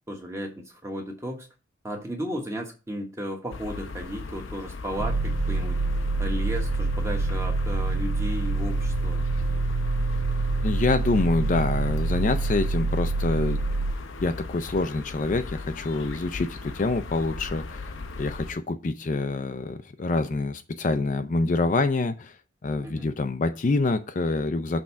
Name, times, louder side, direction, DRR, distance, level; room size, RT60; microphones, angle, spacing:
voice 1, 0.1-1.5 1.8-5.8 6.2-9.2 22.8-23.1, equal, 15° right, 1.2 m, -34 dB
sound 1, 3.5-18.5, left 3 dB, 85° left, 0.6 m, -38 dB
sound 2, 5.0-13.9, right 3 dB, 75° right, 0.4 m, -26 dB
voice 2, 10.6-13.6 14.2-22.4 22.6-24.8, left 3 dB, 40° left, 0.4 m, -26 dB
6.3 x 3.6 x 5.5 m
head